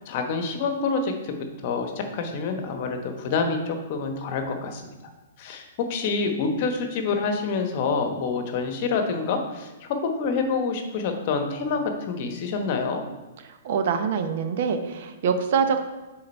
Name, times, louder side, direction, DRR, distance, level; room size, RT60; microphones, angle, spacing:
voice 1, 0.0-4.8 5.4-13.0, left 4 dB, 45° left, 5 dB, 1.0 m, -27 dB
voice 2, 13.5-15.8, right 6 dB, 55° right, 8 dB, 0.8 m, -25 dB
6.5 x 4.0 x 4.4 m, 1.1 s
hypercardioid pair, 135°, 0 cm